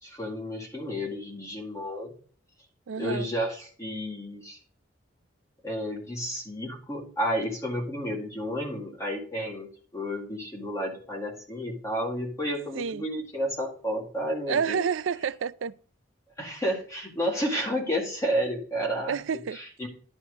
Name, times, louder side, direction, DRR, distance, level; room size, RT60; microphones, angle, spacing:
voice 1, 0.0-2.1 3.0-4.6 5.6-14.8 16.4-19.2 19.5-19.9, equal, 15° left, 2.0 m, -31 dB
voice 2, 2.9-3.3 12.8-13.1 14.5-15.8 19.1-19.6, right 6 dB, 80° right, 0.4 m, -29 dB
10.5 x 4.3 x 5.1 m
head